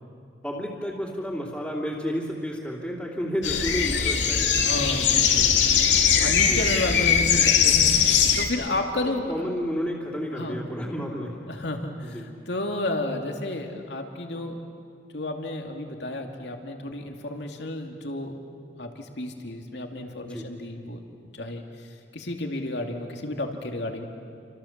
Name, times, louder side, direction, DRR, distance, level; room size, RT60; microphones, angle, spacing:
voice 1, 0.4-4.5 6.3-6.6 8.9-11.4 12.1-12.2 20.2-20.5, equal, 5° left, -4 dB, 3.0 m, -31 dB
sound 1, 3.4-8.5, left 7 dB, 90° left, 2.6 m, -20 dB
voice 2, 4.5-5.8 6.2-9.5 10.3-10.6 11.5-14.7 15.1-18.4 18.8-21.0 21.3-24.0, left 1 dB, 75° left, 3 dB, 2.4 m, -32 dB
29.5 x 26.0 x 7.4 m, 2.4 s
head